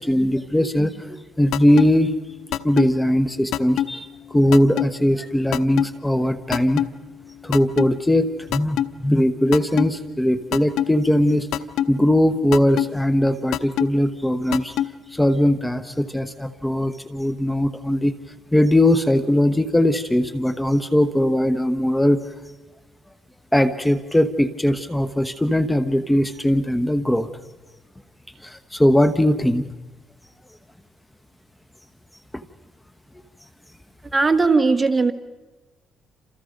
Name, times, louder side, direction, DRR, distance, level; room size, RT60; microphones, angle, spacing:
voice 1, 0.0-2.1 2.6-6.8 7.4-11.5 11.9-14.8 15.1-18.1 18.5-22.2 23.5-27.3 28.4-29.7 32.3-32.4, left 1 dB, 10° left, 11 dB, 1.2 m, -20 dB
sound 1, 1.5-1.9 2.5-2.9 3.5-3.9 4.5-4.9 5.5-5.9 6.5-6.9 7.5-7.9 8.5-8.9 9.5-9.9 10.5-10.9 11.5-11.9 12.5-12.9 13.5-13.9 14.5-14.9, left 11 dB, 85° left, 0.8 m, -22 dB
voice 2, 34.1-35.1, right 4 dB, 25° right, 9 dB, 1.6 m, -18 dB
29.0 x 27.5 x 5.3 m, 1.1 s
cardioid pair, 90°, 0 cm